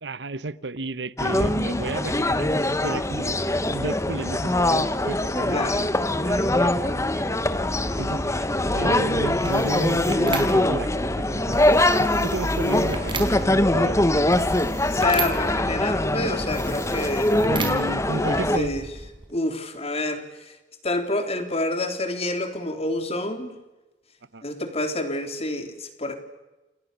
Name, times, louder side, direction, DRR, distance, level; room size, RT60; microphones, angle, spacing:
voice 1, 0.0-5.8 6.2-7.4 8.0-11.6 12.0-14.0 17.5-18.7 24.3-24.4, right 2 dB, 75° right, 1.0 m, -33 dB
sound 1, 1.2-18.6, left 1 dB, 15° left, 1.3 m, -23 dB
voice 2, 5.5-5.8 14.8-17.3 18.5-18.8 19.3-20.5 20.8-23.6 24.4-26.2, left 2 dB, 35° left, 3.6 m, -28 dB
sound 2, 7.3-19.3, right 2 dB, 30° right, 4.8 m, -35 dB
29.5 x 29.5 x 6.9 m
head